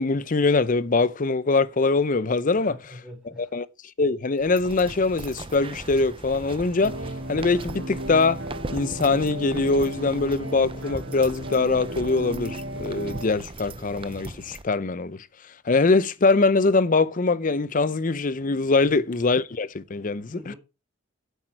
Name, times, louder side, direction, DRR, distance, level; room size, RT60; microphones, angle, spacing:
voice 1, 0.0-2.8 3.4-3.7 4.0-7.0 7.3-8.4 8.7-15.2 15.7-20.5, left 3 dB, 40° left, 0.6 m, -23 dB
voice 2, 2.5-3.5 20.3-20.6, left 1 dB, 5° right, 3.2 m, -44 dB
sound 1, 4.4-14.6, right 2 dB, 25° right, 0.6 m, -39 dB
sound 2, 6.8-13.3, right 1 dB, 65° right, 1.7 m, -35 dB
8.8 x 8.1 x 4.6 m
head